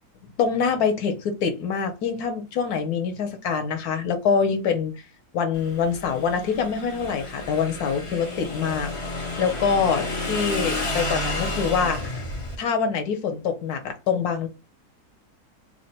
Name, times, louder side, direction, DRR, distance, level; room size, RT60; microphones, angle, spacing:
voice 1, 0.4-4.9 5.3-12.1 12.6-14.5, left 6 dB, 75° left, 1.2 m, -25 dB
Motorcycle / Engine, 5.5-12.6, left 2 dB, 55° left, 0.3 m, -31 dB
3.2 x 2.1 x 4.0 m
omnidirectional pair, 1.7 m